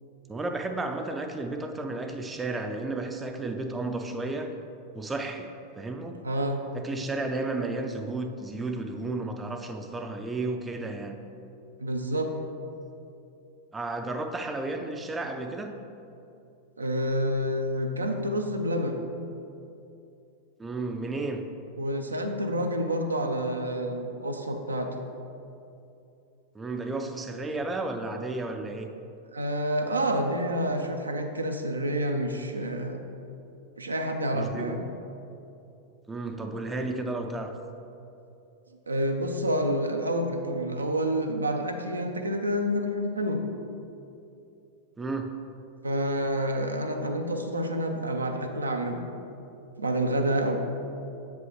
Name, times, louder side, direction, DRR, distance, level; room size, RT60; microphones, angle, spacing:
voice 1, 0.3-4.5 4.9-6.2 6.7-11.2 13.7-15.8 20.6-21.4 26.5-28.9 34.3-34.9 36.1-37.5 45.0-45.3, right 2 dB, 15° right, 5 dB, 0.4 m, -33 dB
voice 2, 6.2-6.6 11.8-12.3 16.8-19.0 21.8-24.9 29.3-33.0 33.8-34.9 38.9-43.4 45.8-49.0 49.8-50.6, equal, 80° right, 4 dB, 0.5 m, -28 dB
7.6 x 5.2 x 3.0 m, 2.7 s
figure-of-eight pair, 90°, 0 cm